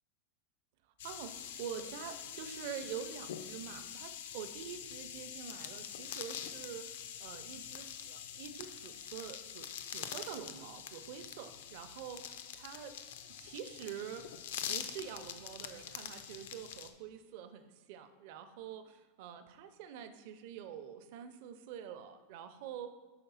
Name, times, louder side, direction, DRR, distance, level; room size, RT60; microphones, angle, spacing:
sound 1, 1.0-16.9, left 9 dB, 70° left, 0.5 m, -45 dB
voice 1, 1.0-13.0 13.4-14.3 14.6-22.9, right 8 dB, 45° right, 9 dB, 0.5 m, -46 dB
5.7 x 4.2 x 5.5 m, 1.3 s
supercardioid pair, 175°, 0 cm